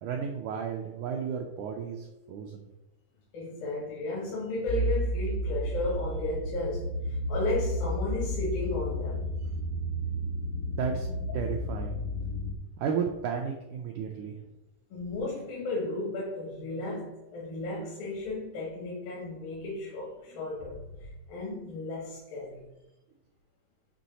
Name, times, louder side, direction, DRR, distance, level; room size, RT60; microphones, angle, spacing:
voice 1, 0.0-2.6 10.7-11.1 11.3-12.0 12.8-14.4, right 7 dB, 85° right, 2 dB, 1.7 m, -33 dB
voice 2, 3.3-9.3 14.9-22.6, left 2 dB, 80° left, -5 dB, 2.9 m, -34 dB
sound 1, 4.7-12.6, equal, 60° left, 1.0 m, -32 dB
7.5 x 3.1 x 4.1 m, 0.99 s
omnidirectional pair, 4.1 m